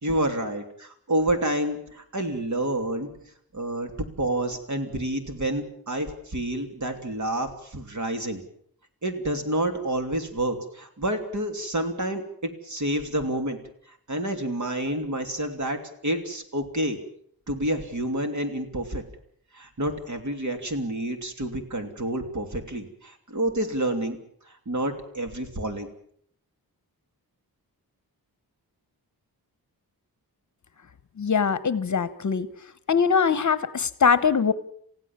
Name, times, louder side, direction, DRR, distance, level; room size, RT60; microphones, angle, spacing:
voice 1, 0.0-3.1 3.5-8.4 9.0-13.6 14.1-17.0 17.5-19.0 19.5-24.2 24.5-25.9, right 1 dB, 50° right, 6 dB, 3.1 m, -29 dB
voice 2, 31.2-32.5 32.9-34.5, left 6 dB, 50° left, 14 dB, 1.1 m, -22 dB
28.5 x 16.0 x 7.4 m, 0.65 s
wide cardioid pair, 160°, 37 cm